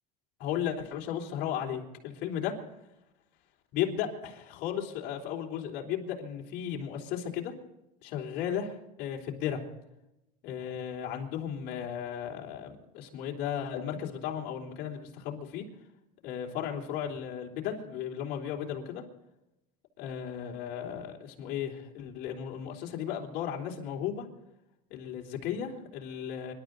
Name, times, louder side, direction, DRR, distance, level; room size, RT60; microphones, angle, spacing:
voice 1, 0.4-2.5 3.7-7.5 8.0-9.6 10.4-15.6 16.2-19.0 20.0-24.3 24.9-26.5, left 9 dB, 60° left, 0 dB, 3.7 m, -35 dB
26.0 x 12.5 x 4.0 m, 0.91 s
supercardioid pair, 125°, 19 cm